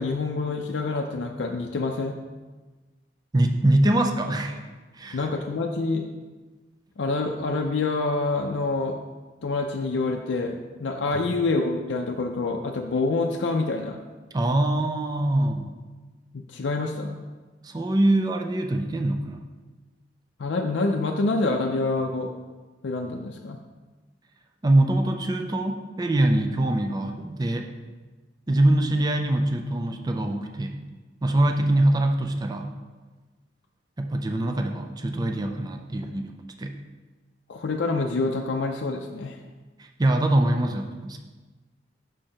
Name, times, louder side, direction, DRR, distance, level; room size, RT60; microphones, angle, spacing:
voice 1, 0.0-2.2 5.1-6.0 7.0-9.0 9.4-14.0 16.3-17.2 20.4-22.3 22.8-23.6 37.5-39.4, left 3 dB, 70° left, 2 dB, 0.5 m, -27 dB
voice 2, 3.3-4.6 4.9-5.2 14.3-15.7 17.6-19.4 24.6-27.7 28.5-30.8 31.2-32.7 34.0-36.3 36.6-36.8 39.8-41.2, right 1 dB, 20° right, 4 dB, 0.4 m, -23 dB
6.4 x 4.4 x 4.9 m, 1.3 s
head